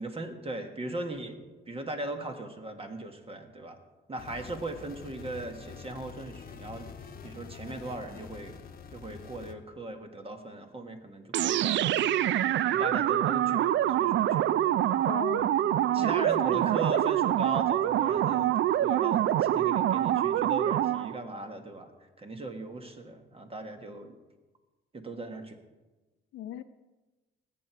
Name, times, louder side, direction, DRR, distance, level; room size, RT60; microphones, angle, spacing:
voice 1, 0.0-1.4 1.7-3.8 4.1-6.9 7.2-8.5 8.9-14.5 15.9-21.9 22.2-24.1 24.9-25.6, right 2 dB, 30° right, 1.6 m, -38 dB
sound 1, 4.2-9.5, left 6 dB, 45° left, 1.0 m, -46 dB
sound 2, 11.3-21.2, right 12 dB, 65° right, 0.4 m, -25 dB
voice 2, 15.1-16.6 26.3-26.6, left 12 dB, 85° left, 0.7 m, -39 dB
19.5 x 7.8 x 4.6 m
cardioid pair, 90°, 20 cm